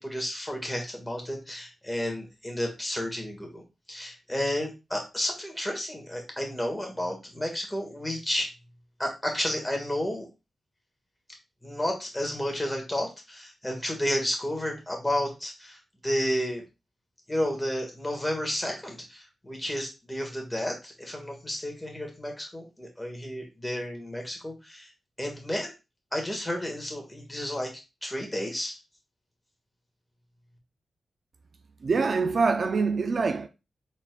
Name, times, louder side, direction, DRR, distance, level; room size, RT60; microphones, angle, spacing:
voice 1, 0.0-3.6 3.9-8.5 9.0-10.3 11.6-16.6 17.3-24.9 25.2-25.7 26.1-27.7 28.0-28.8, equal, 10° left, 1.7 m, -31 dB
voice 2, 31.8-33.5, right 4 dB, 60° right, 0.4 m, -25 dB
4.2 x 4.1 x 2.3 m
cardioid pair, 70°, 0 cm